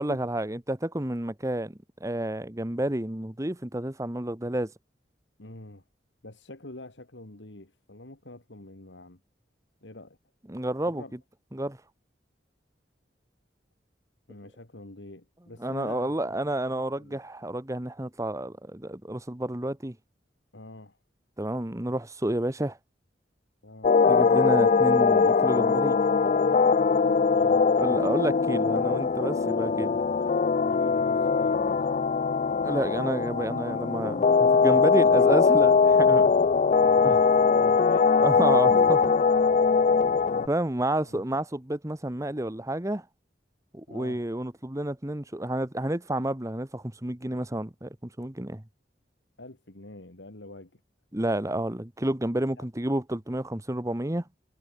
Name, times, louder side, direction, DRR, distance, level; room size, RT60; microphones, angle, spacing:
voice 1, 0.0-4.7 10.5-11.0 11.5-11.8 15.6-20.0 21.4-22.8 24.0-26.0 27.8-30.0 32.6-36.3 37.0-37.1 38.2-39.1 40.5-43.0 43.7-48.6 51.1-54.2, right 1 dB, 20° right, 1.2 m, -30 dB
voice 2, 5.4-5.8 6.2-9.2 9.8-10.2 10.8-11.1 14.3-17.2 20.5-21.0 23.6-23.9 27.3-27.7 30.7-32.0 34.7-35.6 36.5-38.9 40.2-40.4 41.0-41.2 43.9-44.2 49.4-50.8 52.6-52.7, left 2 dB, 90° left, 2.7 m, -46 dB
sound 1, 23.8-40.5, left 5 dB, 40° left, 0.4 m, -21 dB
head